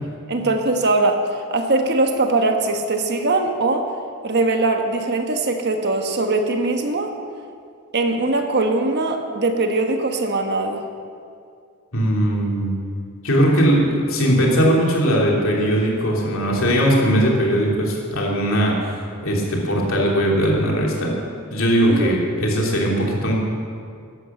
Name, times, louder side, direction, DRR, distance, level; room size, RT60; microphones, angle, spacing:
voice 1, 0.3-1.2 1.5-3.9 4.2-7.1 7.9-10.8 21.9-22.1, right 2 dB, 50° right, 4 dB, 1.2 m, -21 dB
voice 2, 11.9-12.7 13.2-18.8 19.2-21.2 21.5-23.3, equal, 65° left, -2 dB, 3.0 m, -19 dB
12.0 x 11.0 x 7.3 m, 2.3 s
head